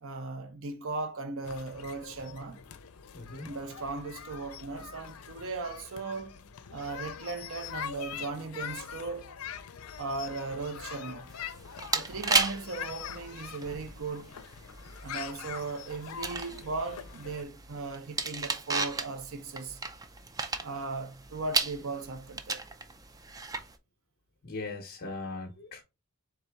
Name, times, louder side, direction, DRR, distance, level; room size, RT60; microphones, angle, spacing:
voice 1, 0.0-2.6 3.4-6.3 6.7-9.3 10.0-11.3 11.9-14.3 15.0-19.8 20.6-22.6, right 3 dB, 65° right, 0.7 m, -37 dB
sound 1, 1.4-17.4, left 8 dB, 85° left, 0.5 m, -43 dB
voice 2, 3.1-3.5 24.4-25.8, left 3 dB, 50° left, 0.8 m, -39 dB
sound 2, 11.3-23.8, right 3 dB, 15° right, 0.4 m, -35 dB
4.1 x 3.4 x 3.4 m
head